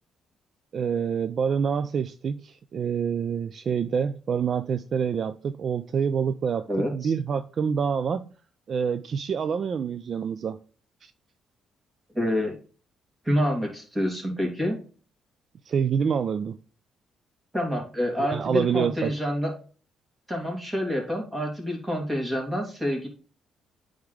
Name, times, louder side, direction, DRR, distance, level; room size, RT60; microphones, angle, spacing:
voice 1, 0.7-8.3 8.7-10.6 11.0-11.1 15.7-16.6 18.3-19.1, right 7 dB, 55° right, 0.4 m, -27 dB
voice 2, 6.7-7.1 12.1-12.5 13.2-14.8 17.5-19.5 20.3-23.1, equal, 15° right, 2.8 m, -27 dB
9.1 x 3.6 x 3.2 m
cardioid pair, 90°, 0 cm